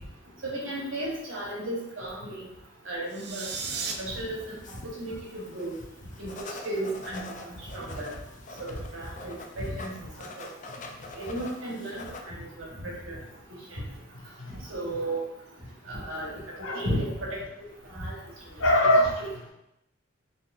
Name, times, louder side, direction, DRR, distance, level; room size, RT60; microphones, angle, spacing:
voice 1, 0.4-2.4 2.9-3.5 4.0-4.6 4.8-5.7 6.2-8.1 8.6-9.9 10.4-10.5 11.1-13.2 13.7-13.8 14.5-15.2 15.9-16.3 16.7-17.4 17.9-18.1, right 1 dB, 75° right, -4 dB, 1.4 m, -34 dB
sound 1, 3.1-3.9, right 5 dB, 55° right, 0.5 m, -34 dB
sound 2, 3.4-12.2, left 2 dB, 40° left, 0.4 m, -45 dB
voice 2, 14.1-14.7 15.9-16.0 16.6-16.9 18.6-19.3, left 1 dB, 80° left, -1 dB, 0.9 m, -25 dB
4.2 x 3.6 x 2.6 m, 0.85 s
head